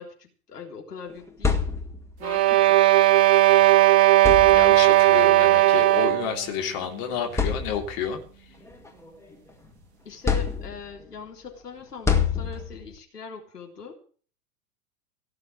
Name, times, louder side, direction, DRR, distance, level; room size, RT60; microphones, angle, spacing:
voice 1, 0.0-1.6 2.2-2.9 10.1-14.0, left 5 dB, 75° left, 1 dB, 3.8 m, -41 dB
sound 1, 1.1-2.2 3.5-3.6 4.1-5.0 6.1-6.3 6.8-6.9 7.3-8.1 8.6-9.7 10.2-11.1 12.0-12.9, left 6 dB, 5° left, 1.8 m, -27 dB
sound 2, 2.2-6.4, right 15 dB, 45° right, 0.6 m, -17 dB
voice 2, 4.2-8.2, left 8 dB, 40° left, 2 dB, 3.5 m, -30 dB
17.5 x 6.7 x 8.9 m, 0.43 s
figure-of-eight pair, 95°, 48 cm